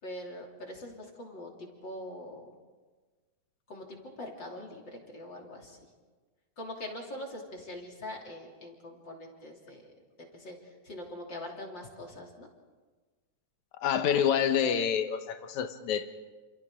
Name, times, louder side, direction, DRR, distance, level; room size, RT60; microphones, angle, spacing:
voice 1, 0.0-2.5 3.7-5.8 6.6-9.9 10.3-12.5, left 1 dB, 35° left, 0 dB, 3.4 m, -43 dB
voice 2, 13.8-16.1, left 8 dB, 70° left, 9 dB, 2.4 m, -27 dB
28.5 x 28.5 x 3.8 m, 1.3 s
omnidirectional pair, 3.6 m